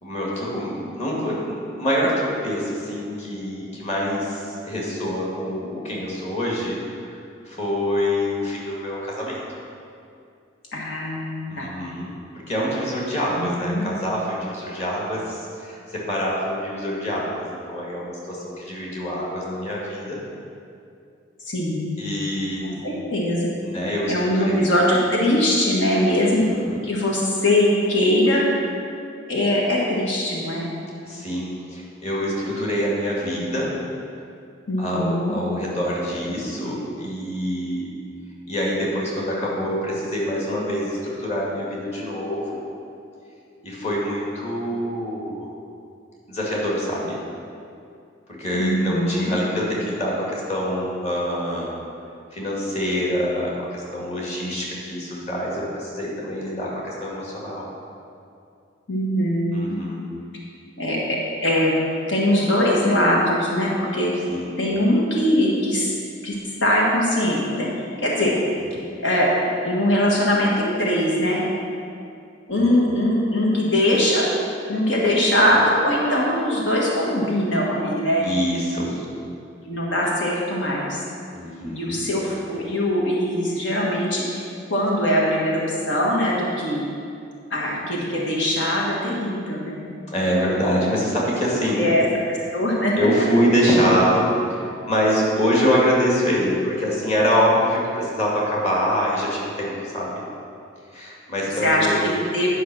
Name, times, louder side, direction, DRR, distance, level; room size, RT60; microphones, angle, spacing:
voice 1, 0.0-6.8 7.0-7.2 7.5-9.4 11.5-20.2 22.0-22.7 23.6-24.6 26.0-26.8 31.1-33.7 34.8-37.9 38.5-42.6 43.6-45.5 46.3-47.2 48.3-51.8 52.3-57.6 59.5-60.0 64.3-64.6 72.6-72.8 75.1-75.2 78.2-79.0 81.3-82.0 90.1-91.8 92.9-94.3 94.8-100.2 100.9-102.0, equal, 35° left, -4 dB, 2.1 m, -25 dB
voice 2, 10.7-11.7 13.4-13.8 21.5-22.0 22.6-23.5 24.1-26.4 26.8-28.5 29.3-30.7 34.7-35.3 48.5-49.3 58.9-59.8 60.8-64.1 64.6-65.9 66.2-67.7 68.0-68.4 69.0-69.3 69.6-71.4 72.5-74.2 74.7-78.2 79.6-81.0 81.6-86.8 87.5-89.8 91.8-92.9 93.6-93.7 101.6-102.5, left 1 dB, 80° left, -3 dB, 1.5 m, -21 dB
10.5 x 5.5 x 6.1 m, 2.4 s
head